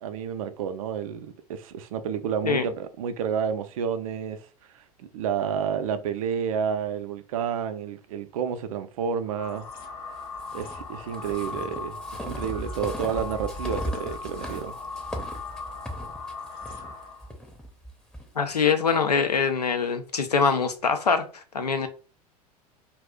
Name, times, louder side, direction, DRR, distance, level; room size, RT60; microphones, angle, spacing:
voice 1, 0.0-4.5 5.0-9.7 10.5-14.7, right 7 dB, 65° right, 0.4 m, -30 dB
sound 1, 9.2-17.3, left 3 dB, 45° left, 1.0 m, -38 dB
sound 2, 10.4-18.3, equal, 5° left, 0.6 m, -37 dB
voice 2, 18.4-21.9, left 5 dB, 85° left, 0.4 m, -24 dB
2.4 x 2.0 x 3.5 m
figure-of-eight pair, 80°, 20 cm